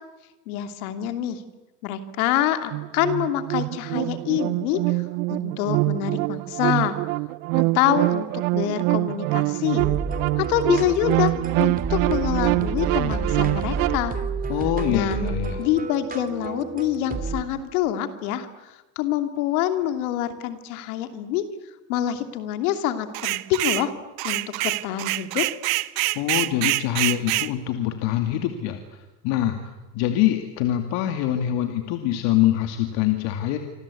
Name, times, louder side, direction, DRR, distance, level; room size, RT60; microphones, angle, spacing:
voice 1, 0.5-1.4 1.8-5.0 5.3-7.0 7.5-9.9 10.4-11.3 11.6-14.2 14.9-15.2 15.6-21.4 21.9-23.9 24.2-25.5, left 11 dB, 90° left, 8 dB, 2.8 m, -26 dB
sound 1, 2.7-14.0, right 22 dB, 80° right, 1.0 m, -25 dB
sound 2, 9.8-17.4, right 5 dB, 20° right, 2.7 m, -30 dB
voice 2, 14.5-15.6 26.1-29.6 29.9-33.6, left 12 dB, 65° left, 6 dB, 2.5 m, -24 dB
sound 3, 23.1-23.9 24.2-27.5, right 21 dB, 60° right, 1.1 m, -25 dB
26.5 x 26.5 x 8.5 m, 1.1 s
cardioid pair, 135°, 42 cm